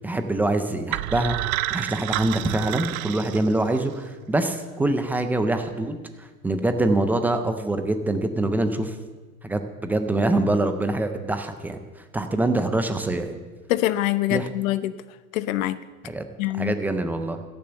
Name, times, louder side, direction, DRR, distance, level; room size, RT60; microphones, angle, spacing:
voice 1, 0.0-1.4 1.7-8.9 9.4-11.8 12.1-13.4 14.3-14.5 16.0-16.2 16.6-17.4, right 2 dB, 5° right, 8 dB, 0.3 m, -24 dB
sound 1, 0.9-3.9, right 16 dB, 65° right, 0.6 m, -29 dB
voice 2, 13.7-14.9 15.3-15.8 16.4-16.7, left 15 dB, 60° left, 14 dB, 0.8 m, -24 dB
15.5 x 6.9 x 7.9 m, 1.3 s
hypercardioid pair, 115°, 45 cm